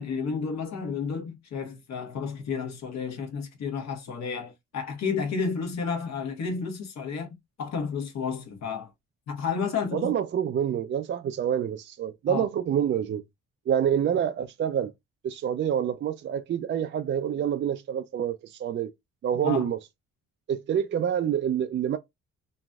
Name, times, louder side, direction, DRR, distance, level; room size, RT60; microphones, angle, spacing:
voice 1, 0.0-7.3 7.6-8.9 9.3-10.1 12.3-12.5 19.4-19.7, left 5 dB, 60° left, 1.2 m, -31 dB
voice 2, 9.9-13.2 13.7-14.9 15.2-18.9 19.2-19.8 20.5-22.0, right 9 dB, 40° right, 0.4 m, -27 dB
3.0 x 2.6 x 2.2 m
cardioid pair, 90°, 30 cm